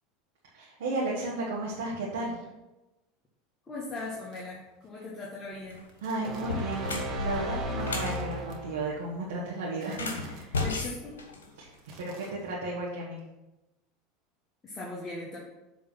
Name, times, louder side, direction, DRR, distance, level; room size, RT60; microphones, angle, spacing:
voice 1, 0.5-2.5 6.0-10.6 11.6-11.7 12.0-13.2, right 2 dB, 75° right, -5 dB, 1.4 m, -34 dB
voice 2, 3.6-5.8 10.6-11.2 14.6-15.4, left 3 dB, 25° left, -5 dB, 1.7 m, -39 dB
sound 1, 3.9-4.9 5.7-6.9 7.7-8.6 9.8-10.5 11.7-12.7, right 3 dB, 55° right, 1.3 m, -54 dB
sound 2, 5.6-5.8 6.4-8.2 9.8-11.9, left 3 dB, 85° left, 1.2 m, -34 dB
sound 3, 6.2-9.0, equal, 35° right, 1.5 m, -35 dB
7.5 x 3.5 x 5.9 m, 1.0 s
hypercardioid pair, 85°, 0 cm